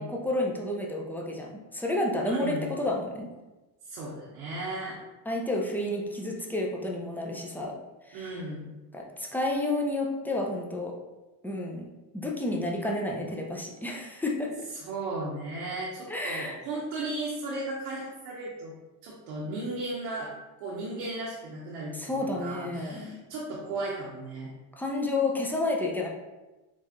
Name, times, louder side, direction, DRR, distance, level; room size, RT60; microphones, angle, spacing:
voice 1, 0.0-3.3 5.3-7.8 8.1-8.4 8.9-11.0 11.4-11.9 12.1-14.7 16.1-16.6 21.9-23.2 24.8-26.1, left 2 dB, 5° left, -1 dB, 0.3 m, -30 dB
voice 2, 2.2-2.6 3.8-5.0 8.1-8.7 14.7-18.7 19.0-20.3 20.6-24.5, right 2 dB, 85° right, -5 dB, 0.9 m, -35 dB
4.4 x 2.4 x 2.8 m, 1.1 s
supercardioid pair, 105°, 43 cm